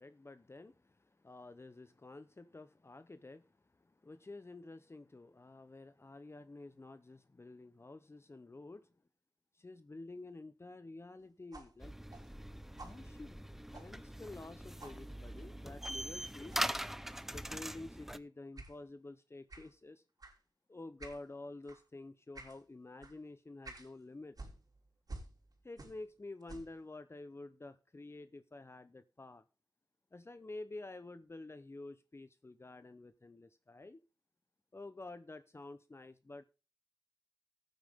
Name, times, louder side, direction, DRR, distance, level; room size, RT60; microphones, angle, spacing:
voice 1, 0.0-8.9 9.5-11.9 12.8-16.6 17.3-20.0 20.7-24.4 25.6-29.4 30.1-34.0 34.7-36.4, left 2 dB, 35° left, 0.7 m, -50 dB
sound 1, 11.5-14.5 14.8-15.0 15.8-16.0 16.5-16.7 17.5-17.7 18.6-18.8 19.5-19.7 20.2-20.4 21.0-21.2 21.6-21.8 22.3-22.6 23.0-23.2 23.6-23.9 24.3-26.1 26.4-26.8, right 2 dB, 55° right, 3.4 m, -52 dB
sound 2, 11.8-18.2, equal, 5° right, 0.7 m, -42 dB
14.5 x 9.2 x 3.5 m
cardioid pair, 50°, 8 cm